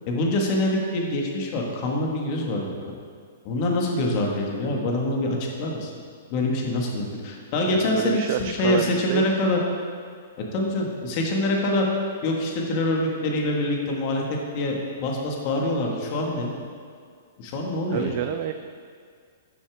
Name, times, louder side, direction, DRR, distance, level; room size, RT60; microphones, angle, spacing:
voice 1, 0.1-2.8 3.4-5.9 6.3-9.6 10.4-11.8 12.2-14.2 14.5-16.5 17.4-18.1, left 1 dB, 40° left, -1 dB, 1.7 m, -25 dB
voice 2, 7.6-9.2 17.9-18.5, right 11 dB, 45° right, 8 dB, 0.4 m, -28 dB
12.0 x 7.0 x 3.6 m, 2.1 s
hypercardioid pair, 150°, 0 cm